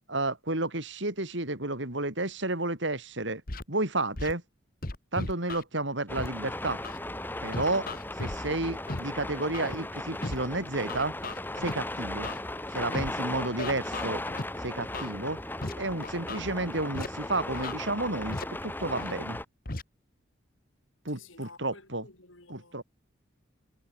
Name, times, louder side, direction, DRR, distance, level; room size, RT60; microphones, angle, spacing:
voice 1, 0.1-3.4 3.7-4.4 5.1-6.8 7.4-7.9 8.2-11.1 11.6-12.3 12.7-14.2 14.6-15.4 15.7-19.4 21.0-22.1 22.5-22.8, right 2 dB, 65° right, 4.1 m, -31 dB
Scratching (performance technique), 3.5-3.6 4.1-4.3 4.8-5.6 6.2-6.3 6.8-7.0 7.5-8.4 8.9-9.0 9.5-9.8 10.2-10.4 10.9-11.7 12.2-12.4 12.9-13.1 13.6-14.4 14.9-15.1 15.6-15.7 16.0-16.4 16.9-17.1 17.5-17.7 18.3-18.4 19.0-19.1 19.6-19.8, left 2 dB, 45° left, 1.7 m, -35 dB
sound 1, 6.1-19.5, left 1 dB, 10° left, 2.3 m, -37 dB
voice 2, 21.1-22.8, left 3 dB, 80° left, 6.1 m, -52 dB
head